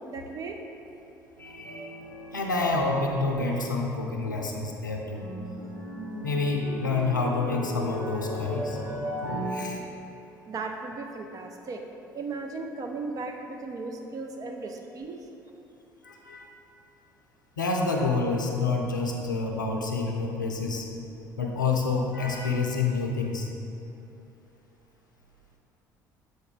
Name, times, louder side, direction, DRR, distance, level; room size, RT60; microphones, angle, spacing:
voice 1, 0.1-0.6 10.5-11.8 12.1-15.2, right 3 dB, 35° right, 3 dB, 0.5 m, -36 dB
voice 2, 1.4-1.9 2.3-5.2 6.2-8.8 9.5-9.8 16.0-16.5 17.6-20.9 21.4-23.5, left 3 dB, 85° left, 1 dB, 0.5 m, -28 dB
sound 1, 1.4-3.7 3.9-4.5 4.8-9.5, equal, 75° right, 1.2 m, -37 dB
7.0 x 4.0 x 3.5 m, 2.9 s
figure-of-eight pair, 55°, 10 cm